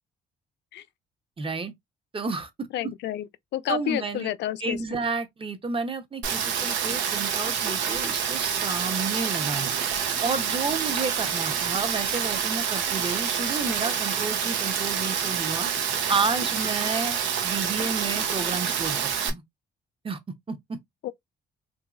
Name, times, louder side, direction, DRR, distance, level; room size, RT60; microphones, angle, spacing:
voice 1, 1.4-1.7 2.1-2.7 3.7-4.3 4.6-9.8 10.2-15.7 16.1-19.0 19.3-19.4 20.0-20.2 20.5-20.8, right 4 dB, 30° right, 0.8 m, -31 dB
voice 2, 2.7-3.3 3.5-4.8 21.0-21.1, left 12 dB, 70° left, 0.4 m, -29 dB
Rain, 6.2-19.3, right 7 dB, 80° right, 0.8 m, -27 dB
2.9 x 2.7 x 2.4 m
supercardioid pair, 70°, 19 cm